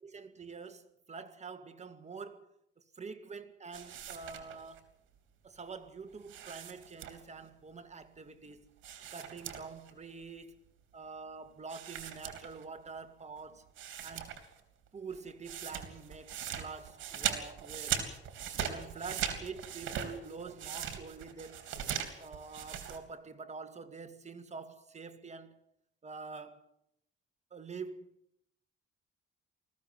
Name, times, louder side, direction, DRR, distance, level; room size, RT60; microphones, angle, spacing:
voice 1, 0.0-4.9 5.4-8.7 9.1-10.6 10.9-13.7 14.0-14.4 14.9-18.0 18.7-21.7 22.2-25.6 26.0-26.7 27.5-28.1, right 4 dB, 35° right, 2.3 m, -46 dB
sound 1, 3.7-4.8 6.2-7.4 8.8-9.9 10.2-10.3 11.7-12.9 13.4-13.5 13.8-14.6 14.9-23.0, right 9 dB, 80° right, 3.3 m, -39 dB
20.5 x 15.0 x 9.5 m
cardioid pair, 90°, 20 cm